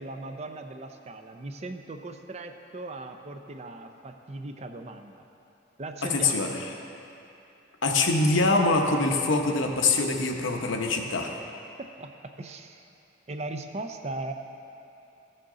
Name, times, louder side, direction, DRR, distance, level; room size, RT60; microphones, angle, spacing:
voice 1, 0.0-5.3 5.8-6.6 11.8-12.9 13.3-14.3, right 2 dB, 35° right, 6 dB, 0.5 m, -38 dB
voice 2, 6.1-6.6 7.8-11.3, left 3 dB, 70° left, 2 dB, 0.9 m, -24 dB
15.5 x 6.5 x 3.8 m, 2.9 s
head